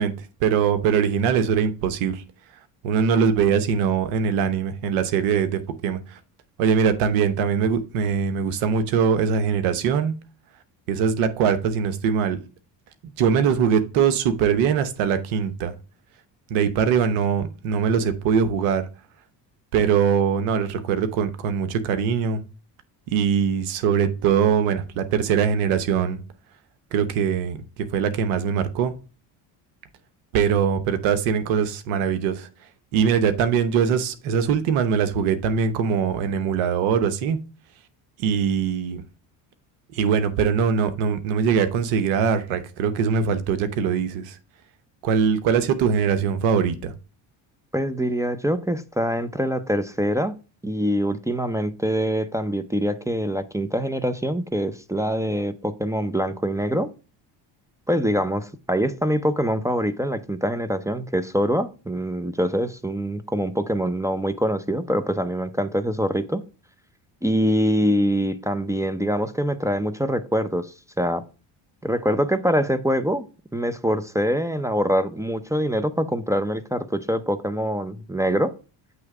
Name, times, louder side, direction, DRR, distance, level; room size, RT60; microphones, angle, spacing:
voice 1, 0.0-2.2 2.8-6.2 6.6-10.1 10.9-12.4 13.0-15.7 16.5-18.8 19.7-22.4 23.1-26.2 26.9-29.0 30.3-32.5 32.9-37.4 38.2-39.0 39.9-44.4 45.0-46.9, right 7 dB, 85° right, 0.9 m, -22 dB
voice 2, 47.7-50.4 50.6-56.9 57.9-66.4 67.2-71.2 71.8-73.3 73.5-78.5, equal, 5° right, 0.6 m, -24 dB
8.1 x 3.2 x 4.8 m
supercardioid pair, 70°, 48 cm